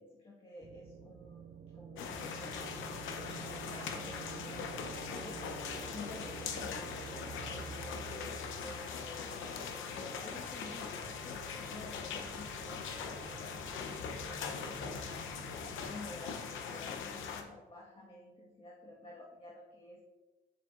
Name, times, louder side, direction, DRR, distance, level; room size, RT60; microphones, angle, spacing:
voice 1, 0.0-2.6 3.2-20.0, left 2 dB, 25° left, -5 dB, 1.6 m, -52 dB
sound 1, 0.6-15.9, right 6 dB, 30° right, 0.5 m, -50 dB
sound 2, 2.0-17.4, left 6 dB, 85° left, 0.8 m, -41 dB
Wind instrument woodwind instrument, 8.4-17.0, right 6 dB, ahead, 1.8 m, -61 dB
8.9 x 7.4 x 2.6 m, 1.2 s
cardioid pair, 90°, 20 cm